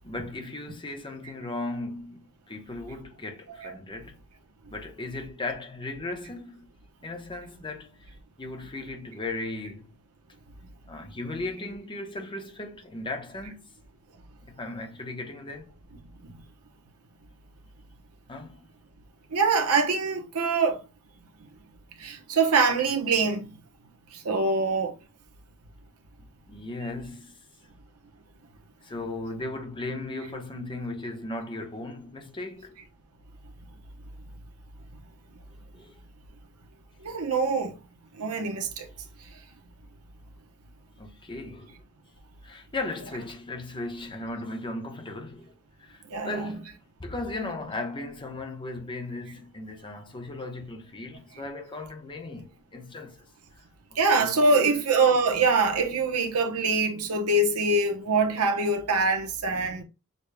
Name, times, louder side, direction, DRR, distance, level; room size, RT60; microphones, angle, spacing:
voice 1, 0.0-4.2 4.7-6.7 7.0-8.1 8.4-10.0 10.9-13.6 14.5-15.8 18.3-18.6 26.2-27.3 28.8-32.8 35.7-36.0 41.0-41.8 42.4-46.7 47.0-53.2 54.2-54.8, left 2 dB, 20° left, 0.8 m, -37 dB
voice 2, 19.3-20.8 22.0-23.6 24.1-25.0 37.0-37.8 38.1-38.9 43.0-43.1 46.1-46.6 54.0-59.8, right 3 dB, 85° right, 0.9 m, -24 dB
6.6 x 2.2 x 3.3 m
head